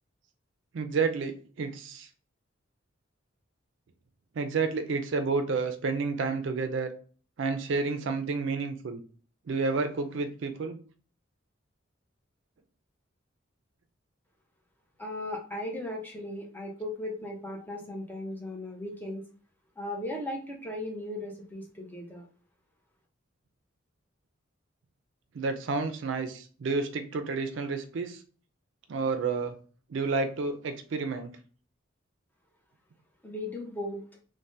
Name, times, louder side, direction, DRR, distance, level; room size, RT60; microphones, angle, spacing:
voice 1, 0.7-2.1 4.4-6.9 7.4-9.0 9.5-10.8 25.3-28.2 28.9-29.6 29.9-31.3, right 4 dB, 70° right, 7 dB, 0.4 m, -30 dB
voice 2, 15.0-19.2 19.8-22.2 33.2-34.0, left 1 dB, 10° left, 0 dB, 0.6 m, -37 dB
3.3 x 2.1 x 2.7 m, 0.41 s
head